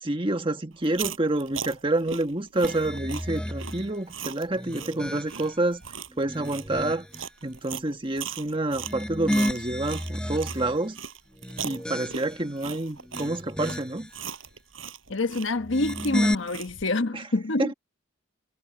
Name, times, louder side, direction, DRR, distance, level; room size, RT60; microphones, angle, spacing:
voice 1, 0.0-5.8 6.2-7.1 7.4-11.0 11.6-14.1 17.1-17.3 17.6-17.7, right 2 dB, 25° right, 1.5 m, -28 dB
Chewing mastication, 0.8-10.6 10.9-16.9, right 7 dB, 80° right, 5.6 m, -38 dB
sound 1, 2.6-3.9 4.5-5.6 6.1-7.2 8.7-10.8 11.3-12.5 13.0-14.1 15.6-16.3, equal, 5° left, 1.0 m, -32 dB
voice 2, 15.1-17.7, left 2 dB, 70° left, 1.3 m, -27 dB
head